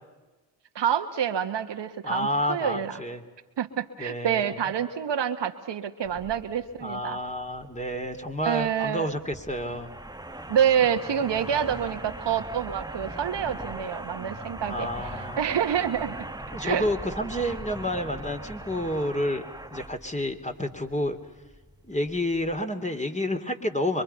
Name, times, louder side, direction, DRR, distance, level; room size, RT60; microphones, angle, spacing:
voice 1, 0.7-3.0 3.6-7.2 8.4-9.1 10.5-16.2 16.6-16.9, right 8 dB, 70° right, 7 dB, 1.5 m, -27 dB
voice 2, 2.0-3.2 4.0-4.6 6.8-9.9 14.7-15.4 16.5-19.4 19.7-21.2 21.8-24.0, left 1 dB, 15° left, 5 dB, 2.8 m, -29 dB
sound 1, 6.0-22.6, right 1 dB, 10° right, 1.3 m, -40 dB
25.5 x 23.0 x 5.7 m, 1.2 s
supercardioid pair, 45°, 45 cm